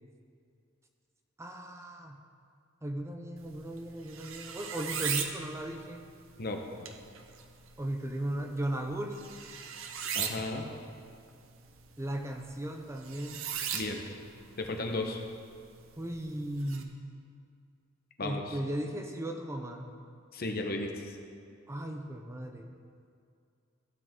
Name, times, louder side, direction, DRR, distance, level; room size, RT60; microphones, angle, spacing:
voice 1, 1.4-2.2 2.8-6.0 7.8-9.3 12.0-13.4 16.0-17.0 18.2-19.9 21.7-22.7, right 1 dB, 15° right, 4 dB, 0.6 m, -36 dB
sound 1, 3.4-16.8, right 7 dB, 85° right, 0.8 m, -40 dB
voice 2, 10.1-10.6 13.7-14.0 14.6-15.2 18.2-18.6 20.3-21.1, left 2 dB, 50° left, 3 dB, 1.0 m, -34 dB
15.5 x 7.9 x 3.7 m, 2.3 s
head